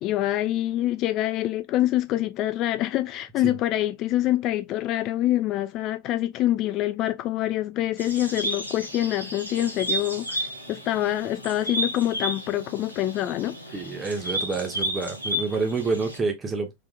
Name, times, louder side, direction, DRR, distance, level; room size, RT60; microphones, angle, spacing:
voice 1, 0.0-13.6, left 14 dB, 35° left, 0.3 m, -26 dB
sound 1, 8.0-16.2, equal, 90° right, 1.3 m, -32 dB
voice 2, 13.7-16.7, right 4 dB, 20° right, 1.1 m, -28 dB
3.6 x 3.4 x 2.4 m
figure-of-eight pair, 90°, 0 cm